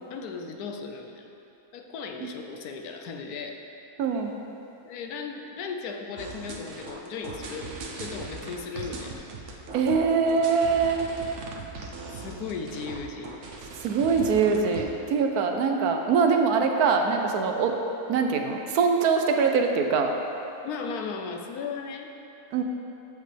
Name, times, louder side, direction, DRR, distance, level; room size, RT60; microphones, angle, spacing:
voice 1, 0.1-1.3 1.7-3.6 4.8-9.2 12.1-13.5 20.6-22.2, left 5 dB, 75° left, 3 dB, 1.1 m, -36 dB
voice 2, 4.0-4.3 9.7-11.1 13.8-17.8 18.1-20.1 22.5-22.6, right 5 dB, 75° right, 4 dB, 1.2 m, -23 dB
sound 1, 6.2-14.8, right 3 dB, 55° right, 1.0 m, -39 dB
14.5 x 5.1 x 3.3 m, 2.9 s
omnidirectional pair, 1.7 m